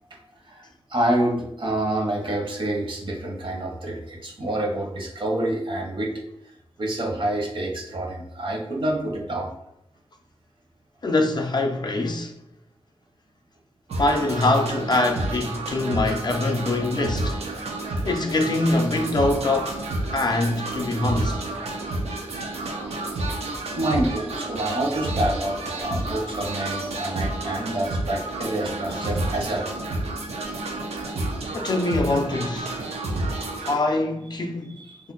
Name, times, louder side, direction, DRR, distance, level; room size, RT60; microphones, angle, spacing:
voice 1, 0.9-6.2 6.8-9.5 23.8-29.7 34.8-35.0, right 1 dB, 55° right, 0.8 m, -27 dB
voice 2, 11.0-12.3 14.0-17.4 18.0-19.7 20.1-21.4 31.5-32.9 33.7-34.8, left 2 dB, 45° left, 0.4 m, -23 dB
sound 1, 13.9-33.8, right 2 dB, 90° right, 0.5 m, -30 dB
2.4 x 2.1 x 3.8 m
wide cardioid pair, 80°, 10 cm